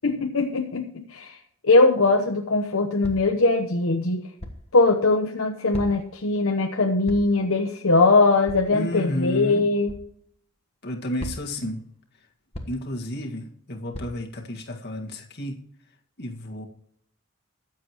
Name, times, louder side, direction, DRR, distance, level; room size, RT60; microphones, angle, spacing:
voice 1, 0.0-1.3 1.6-4.2 4.7-9.9, left 3 dB, 70° left, 3 dB, 1.0 m, -21 dB
sound 1, 3.0-3.4 4.4-4.7 5.7-6.2 7.0-7.4 8.5-8.7 9.9-10.1 11.2-11.6 12.5-12.9 13.9-14.1, left 1 dB, 30° left, 1.3 m, -37 dB
voice 2, 8.7-9.6 10.8-11.8 12.7-15.6 16.2-16.6, left 1 dB, 50° left, 1 dB, 1.9 m, -31 dB
22.5 x 7.6 x 3.1 m, 0.66 s
head